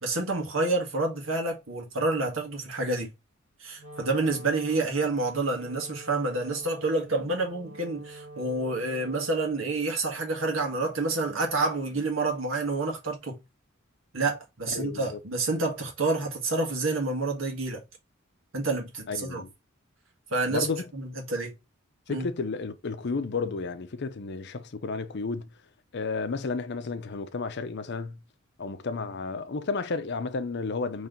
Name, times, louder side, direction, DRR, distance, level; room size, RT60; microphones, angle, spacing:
voice 1, 0.0-3.1 3.6-13.4 14.1-17.8 18.5-19.4 20.3-20.7 20.9-21.5 22.1-22.3, right 3 dB, 75° right, 1.6 m, -28 dB
Wind instrument woodwind instrument, 3.7-9.8, right 2 dB, 40° right, 1.6 m, -46 dB
voice 2, 14.7-15.2 19.1-19.5 20.5-20.9 22.1-25.5 25.9-28.2 28.6-31.1, left 4 dB, 60° left, 0.6 m, -32 dB
4.4 x 3.2 x 3.8 m
head